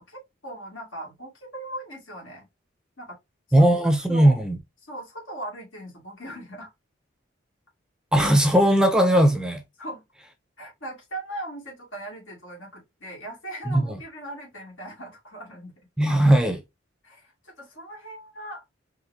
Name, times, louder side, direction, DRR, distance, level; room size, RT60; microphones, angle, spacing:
voice 1, 0.0-2.5 3.0-3.2 3.5-3.7 4.1-4.4 4.8-6.7 9.8-10.0 10.6-15.7 17.0-18.6, right 1 dB, 75° left, 2.5 m, -39 dB
voice 2, 3.5-4.6 8.1-9.6 13.7-14.0 16.0-16.6, right 1 dB, 5° right, 0.5 m, -18 dB
4.6 x 2.9 x 2.6 m
head